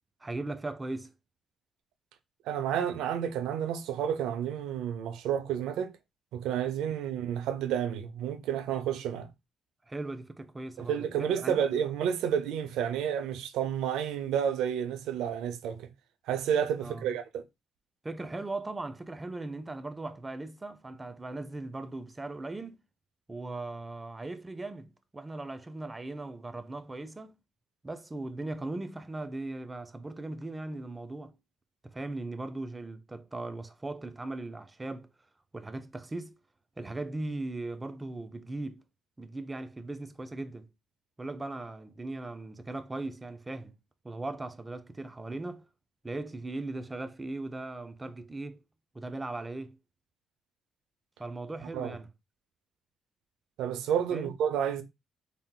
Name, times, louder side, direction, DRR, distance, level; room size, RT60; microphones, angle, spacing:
voice 1, 0.2-1.1 9.9-11.6 16.8-17.1 18.0-22.8 23.3-27.4 27.8-31.3 31.8-35.1 35.5-36.4 36.8-38.8 39.2-40.7 41.2-43.8 44.0-45.7 46.0-48.6 48.9-49.8 51.2-52.1 54.1-54.4, right 2 dB, 20° right, 0.5 m, -38 dB
voice 2, 2.5-5.9 6.3-9.3 10.8-15.9 16.3-17.4 51.7-52.0 53.6-54.8, right 9 dB, 90° right, 0.5 m, -30 dB
4.0 x 3.5 x 2.2 m
cardioid pair, 90°, 0 cm